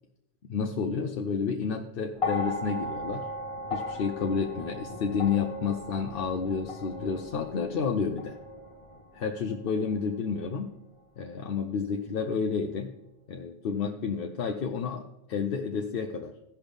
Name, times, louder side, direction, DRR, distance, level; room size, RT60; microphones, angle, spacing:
voice 1, 0.5-3.3 3.7-8.4 9.1-10.7 11.2-12.9 13.3-16.3, left 6 dB, 60° left, 4 dB, 0.8 m, -30 dB
sound 1, 2.1-10.5 11.6-11.7, left 1 dB, 30° left, 1.0 m, -37 dB
15.5 x 5.7 x 3.5 m, 0.90 s
omnidirectional pair, 1.2 m